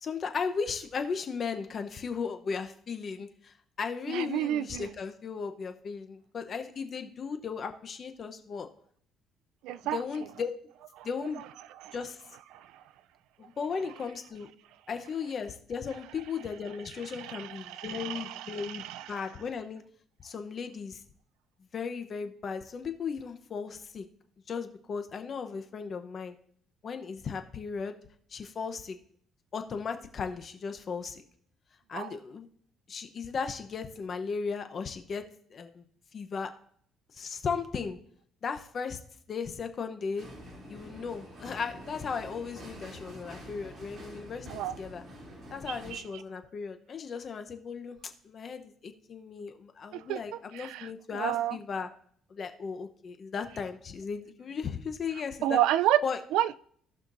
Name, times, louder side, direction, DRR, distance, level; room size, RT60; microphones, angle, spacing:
voice 1, 0.0-8.7 9.9-10.5 11.0-11.4 11.9-12.2 13.4-14.5 14.9-19.8 20.2-21.0 21.7-24.1 24.5-26.3 26.8-28.0 28.3-29.0 29.5-31.2 31.9-32.5 32.9-35.2 35.5-35.8 36.1-36.5 37.1-38.0 38.4-39.0 39.3-40.3 40.7-45.0 45.5-51.9 52.3-55.6 56.0-56.2, left 5 dB, 40° left, 0.8 m, -36 dB
voice 2, 4.1-4.9 9.6-10.0 11.0-11.1 11.8-11.9 12.5-12.8 17.1-19.2 31.9-32.1 44.5-44.8 45.7-46.0 49.9-50.2 50.5-51.6 55.4-56.0 56.3-56.6, right 13 dB, 90° right, 0.3 m, -30 dB
sound 1, 40.2-45.9, equal, 35° right, 2.8 m, -47 dB
17.0 x 5.8 x 2.6 m
cardioid pair, 135°, 0 cm